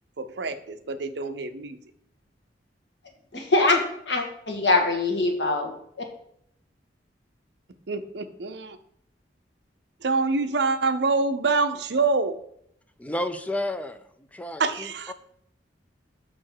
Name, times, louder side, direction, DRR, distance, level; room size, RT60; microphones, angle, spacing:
voice 1, 0.2-1.8 7.9-8.8 10.0-12.3 14.6-15.1, right 3 dB, 65° right, 9 dB, 0.6 m, -26 dB
voice 2, 3.3-5.7, left 2 dB, 75° left, 2 dB, 1.6 m, -23 dB
voice 3, 13.0-14.0 14.3-15.1, left 1 dB, 10° left, 9 dB, 0.4 m, -31 dB
6.2 x 4.4 x 6.0 m, 0.71 s
head